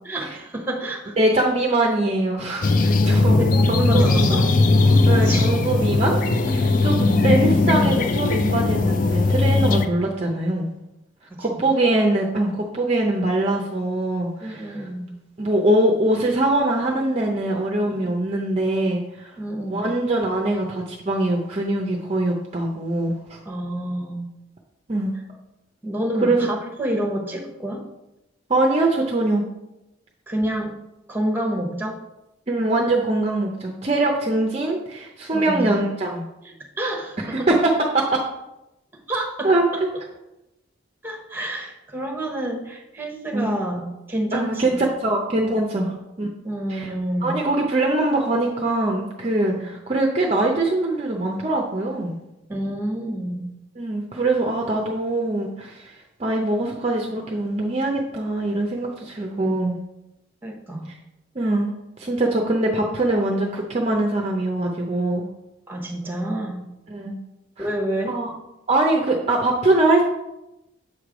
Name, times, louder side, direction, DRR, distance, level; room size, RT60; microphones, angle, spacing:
voice 1, 0.0-1.1 3.4-4.6 5.3-5.5 7.1-7.3 11.3-11.6 14.4-15.1 17.8-18.1 19.4-19.8 23.4-24.2 25.8-27.8 30.3-30.7 31.1-32.0 35.3-35.7 36.4-37.5 38.9-39.8 41.0-44.8 45.8-46.0 46.4-47.4 49.6-49.7 52.5-53.5 59.3-59.6 60.4-60.9 65.7-66.6 67.6-68.2, right 1 dB, 10° right, 1 dB, 0.9 m, -28 dB
voice 2, 1.2-3.4 3.7-4.4 5.0-6.2 6.5-10.7 11.4-14.9 15.4-19.3 19.7-23.4 24.9-25.1 26.2-26.4 28.5-29.4 32.5-36.2 37.3-38.2 39.4-39.7 43.3-43.6 44.3-46.3 46.7-46.9 47.2-52.2 53.8-59.8 61.4-61.7 62.0-65.3 66.9-67.2 67.6-67.7 68.1-68.3 68.7-70.0, right 2 dB, 30° right, 0 dB, 0.5 m, -22 dB
sound 1, 2.6-9.9, left 3 dB, 45° left, 0.4 m, -18 dB
7.3 x 3.2 x 5.0 m, 0.93 s
head